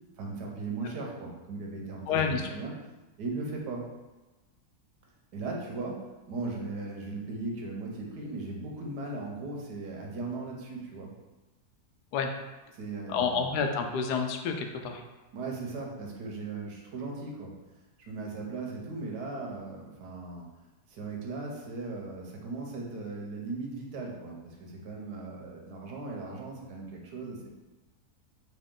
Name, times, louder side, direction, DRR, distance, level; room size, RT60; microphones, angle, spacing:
voice 1, 0.2-2.7 3.2-3.8 5.3-6.0 6.3-11.1 12.7-13.5 15.3-17.5 18.1-20.4 20.9-27.5, right 3 dB, 85° right, 0 dB, 1.4 m, -38 dB
voice 2, 2.1-2.5 12.1-12.3 13.1-15.0, left 5 dB, 85° left, 4 dB, 1.1 m, -29 dB
4.1 x 3.1 x 3.7 m, 1.1 s
omnidirectional pair, 1.7 m